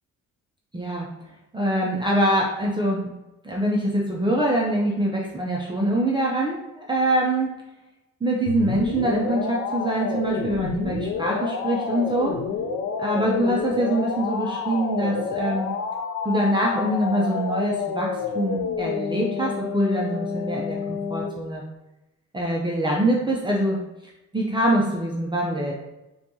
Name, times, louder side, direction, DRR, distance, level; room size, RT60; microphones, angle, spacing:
voice 1, 0.7-1.1 1.5-3.1 3.4-7.5 8.2-12.4 13.0-15.7 16.2-21.6 22.3-23.8 24.3-25.7, right 1 dB, 15° right, -3 dB, 0.5 m, -24 dB
sound 1, 8.5-21.3, left 5 dB, 65° left, 0.5 m, -29 dB
4.2 x 2.3 x 2.7 m, 0.97 s
cardioid pair, 90°, 30 cm